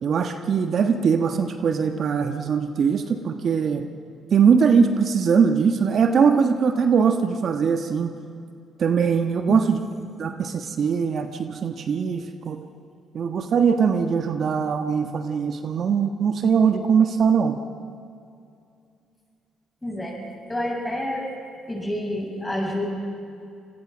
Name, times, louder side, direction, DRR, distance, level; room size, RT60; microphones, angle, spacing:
voice 1, 0.0-3.9 4.3-8.1 8.8-9.8 10.2-12.6 13.1-17.6, right 6 dB, 60° right, 6 dB, 1.3 m, -21 dB
voice 2, 9.5-9.9 19.8-20.2 20.5-21.3 21.7-22.9, left 1 dB, 15° left, 0 dB, 7.9 m, -28 dB
26.5 x 21.5 x 6.2 m, 2.5 s
supercardioid pair, 60°, 0 cm